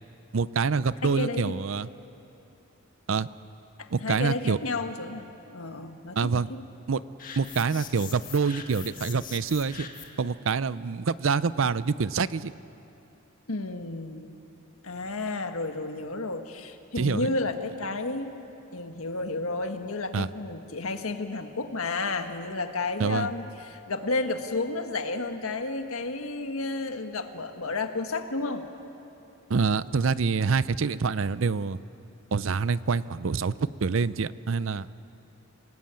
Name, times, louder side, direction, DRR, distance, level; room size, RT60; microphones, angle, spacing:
voice 1, 0.3-1.9 3.1-3.3 3.9-4.6 6.2-6.5 6.9-7.0 7.4-9.9 10.2-12.5 17.0-17.3 20.1-20.3 23.0-23.3 29.5-31.8 32.3-33.5 33.8-34.9, right 5 dB, 65° right, 17 dB, 0.5 m, -26 dB
voice 2, 1.0-1.5 3.8-6.6 13.5-14.4 14.8-18.4 18.7-28.7, left 3 dB, 80° left, 7 dB, 1.6 m, -32 dB
sound 1, 7.2-10.3, left 7 dB, 40° left, 1.9 m, -42 dB
28.0 x 18.5 x 8.9 m, 2.9 s
head